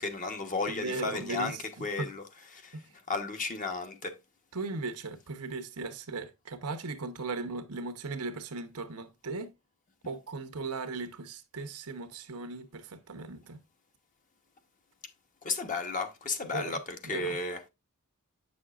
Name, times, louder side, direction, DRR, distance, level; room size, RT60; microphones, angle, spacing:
voice 1, 0.0-2.2 2.5-2.8 3.1-4.1 15.4-17.7, left 3 dB, 35° left, 1.0 m, -34 dB
voice 2, 0.7-2.1 2.7-2.8 4.5-9.5 10.1-13.6 16.5-17.4, right 3 dB, 80° right, 1.0 m, -38 dB
7.9 x 6.2 x 2.4 m
head